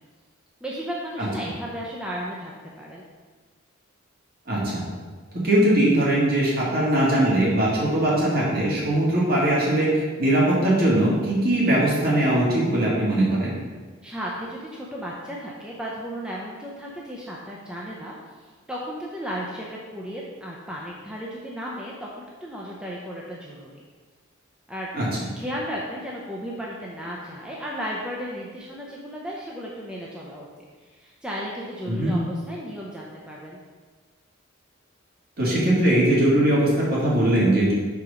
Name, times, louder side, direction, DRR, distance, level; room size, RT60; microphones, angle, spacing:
voice 1, 0.6-3.0 14.0-18.2 18.4-23.7 24.7-24.9 25.4-30.5 30.8-33.6, equal, 5° right, -4 dB, 0.6 m, -34 dB
voice 2, 4.5-4.8 5.3-9.9 10.2-13.5 24.9-25.1 31.9-32.1 35.4-37.7, right 1 dB, 45° right, -6 dB, 1.9 m, -20 dB
5.3 x 4.7 x 4.9 m, 1.4 s
head